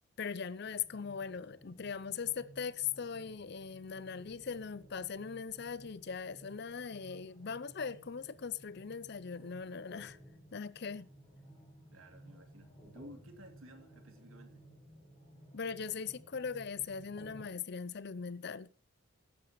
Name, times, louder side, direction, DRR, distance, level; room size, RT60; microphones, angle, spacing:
voice 1, 0.2-10.2 10.5-11.1 15.5-18.7, left 6 dB, 50° left, 0.5 m, -40 dB
sound 1, 0.6-17.4, right 1 dB, 20° left, 6.1 m, -57 dB
voice 2, 11.9-14.6, equal, 75° right, 2.7 m, -55 dB
15.5 x 12.0 x 3.1 m
head